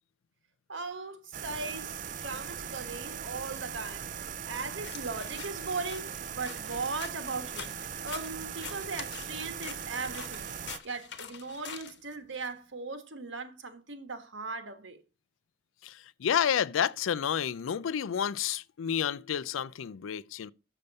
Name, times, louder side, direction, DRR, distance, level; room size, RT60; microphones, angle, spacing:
voice 1, 0.7-4.1 4.5-10.5 10.8-15.0, right 4 dB, 75° right, 1.4 m, -38 dB
sound 1, 1.3-10.8, right 8 dB, 40° right, 0.4 m, -40 dB
sound 2, 4.8-12.5, left 8 dB, 60° left, 1.0 m, -46 dB
voice 2, 16.2-20.5, left 8 dB, 90° left, 0.4 m, -30 dB
7.0 x 6.6 x 5.3 m
head